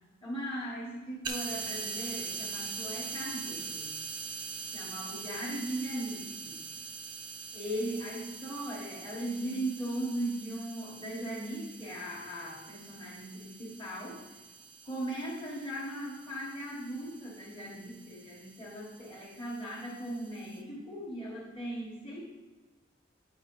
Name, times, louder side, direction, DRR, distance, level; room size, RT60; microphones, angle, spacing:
voice 1, 0.2-3.9 4.6-6.6 7.5-14.2 14.8-22.2, right 1 dB, 25° left, -7 dB, 1.4 m, -38 dB
sound 1, 1.2-20.6, right 5 dB, 25° right, 0.5 m, -43 dB
8.4 x 4.6 x 3.9 m, 1.2 s
head